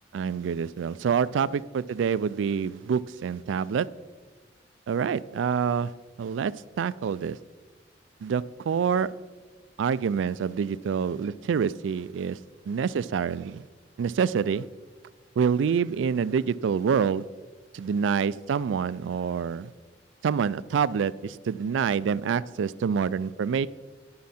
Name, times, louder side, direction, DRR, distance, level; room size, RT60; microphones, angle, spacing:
voice 1, 0.1-3.9 4.9-5.9 6.2-7.4 8.2-9.1 9.8-12.4 12.7-13.6 14.0-14.6 15.4-17.3 17.7-19.7 20.2-23.7, right 6 dB, 85° right, 19 dB, 0.3 m, -26 dB
9.6 x 9.6 x 4.2 m, 1.3 s
head